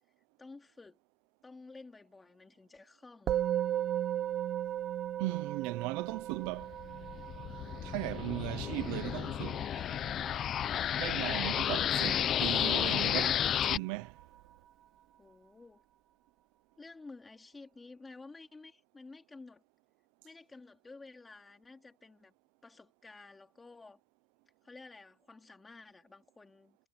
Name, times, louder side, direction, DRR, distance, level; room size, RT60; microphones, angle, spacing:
voice 1, 0.4-1.0 1.4-3.4 15.2-15.8 16.8-19.6 20.2-22.3 22.6-24.0 24.6-26.8, left 3 dB, 10° left, 4.0 m, -52 dB
Musical instrument, 3.3-12.8, right 11 dB, 35° right, 0.9 m, -37 dB
voice 2, 5.2-6.8 7.8-9.7 11.0-14.2, right 23 dB, 65° right, 0.9 m, -37 dB
sound 1, 6.5-13.8, left 10 dB, 30° left, 0.8 m, -32 dB
sound 2, 7.6-14.7, right 23 dB, 80° right, 6.3 m, -59 dB
supercardioid pair, 150°, 0 cm